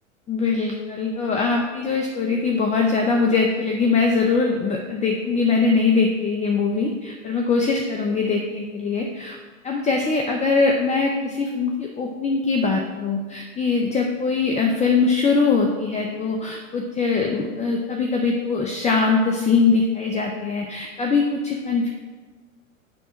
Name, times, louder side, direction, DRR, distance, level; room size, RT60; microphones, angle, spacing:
voice 1, 0.3-9.4 9.6-21.9, left 4 dB, 15° left, 2 dB, 0.8 m, -22 dB
9.9 x 3.7 x 7.1 m, 1.4 s
figure-of-eight pair, 95°, 39 cm